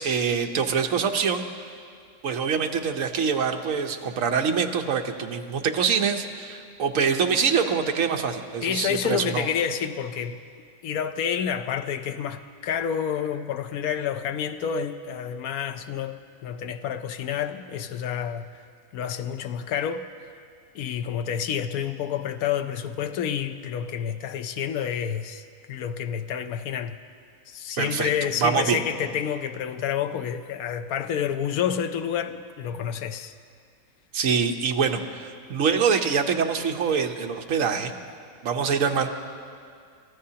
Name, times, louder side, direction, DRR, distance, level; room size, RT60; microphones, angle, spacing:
voice 1, 0.0-1.4 2.2-9.5 27.8-28.8 34.1-37.9 38.4-39.1, right 6 dB, 65° right, 4 dB, 1.3 m, -25 dB
voice 2, 8.6-10.4 10.8-18.6 18.9-20.0 20.7-27.0 27.5-33.3, left 8 dB, 85° left, 8 dB, 1.2 m, -29 dB
28.5 x 14.0 x 2.8 m, 2.2 s
omnidirectional pair, 1.5 m